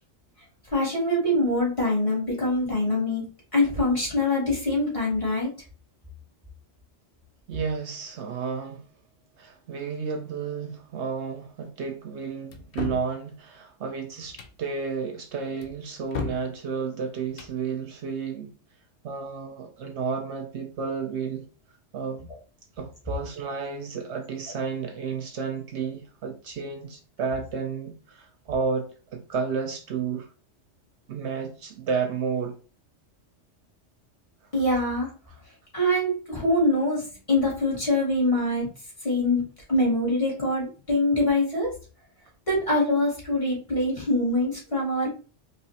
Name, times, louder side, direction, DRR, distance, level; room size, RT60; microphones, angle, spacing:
voice 1, 0.7-3.3 3.5-5.5 34.5-35.1 35.7-38.7 39.0-39.4 39.7-41.7 42.5-45.1, left 1 dB, 25° left, 2.1 m, -24 dB
voice 2, 7.5-8.8 9.4-18.5 19.0-21.5 21.9-22.3 22.8-30.3 31.1-32.6, right 5 dB, 70° right, 0.8 m, -32 dB
sound 1, 12.5-13.1 14.2-14.6 15.6-16.5 17.2-17.6, left 6 dB, 55° left, 0.7 m, -35 dB
4.7 x 3.0 x 2.8 m
omnidirectional pair, 1.3 m